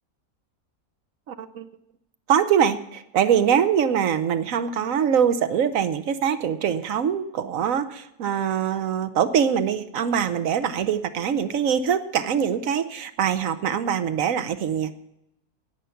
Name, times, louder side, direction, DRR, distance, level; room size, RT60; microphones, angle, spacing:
voice 1, 1.3-1.7 2.3-14.9, right 8 dB, 65° right, 11 dB, 1.1 m, -23 dB
10.0 x 8.9 x 6.9 m, 0.84 s
omnidirectional pair, 1.6 m